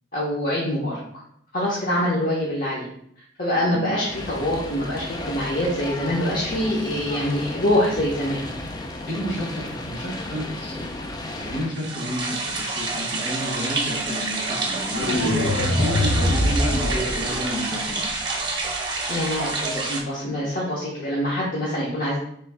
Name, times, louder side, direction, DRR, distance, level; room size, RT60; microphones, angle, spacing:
voice 1, 0.1-1.0 1.5-2.9 3.4-8.4 19.1-22.2, left 1 dB, 50° left, -5 dB, 0.9 m, -25 dB
voice 2, 3.7-4.0 9.1-10.9 11.4-18.0, equal, 65° left, -2 dB, 1.5 m, -31 dB
sound 1, 4.1-11.7, left 2 dB, 20° left, 0.4 m, -34 dB
sound 2, 11.7-20.0, right 3 dB, 25° right, 0.8 m, -28 dB
sound 3, 14.9-17.9, left 1 dB, 85° left, 0.7 m, -23 dB
3.3 x 3.1 x 4.7 m, 0.70 s
head